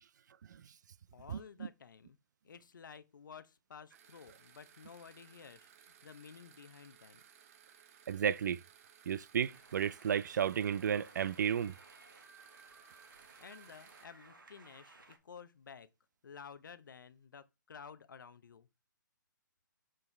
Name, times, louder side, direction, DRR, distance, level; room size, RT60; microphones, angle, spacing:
voice 1, 1.1-2.2 2.4-7.2 13.4-15.9 16.2-18.7, left 6 dB, 70° left, 0.7 m, -53 dB
sound 1, 3.9-14.1, right 8 dB, 45° right, 0.8 m, -61 dB
voice 2, 8.1-8.6 9.1-11.7, right 8 dB, 60° right, 0.4 m, -32 dB
sound 2, 9.4-15.2, right 3 dB, 80° right, 1.6 m, -59 dB
6.2 x 4.6 x 3.2 m
hypercardioid pair, 135°, 11 cm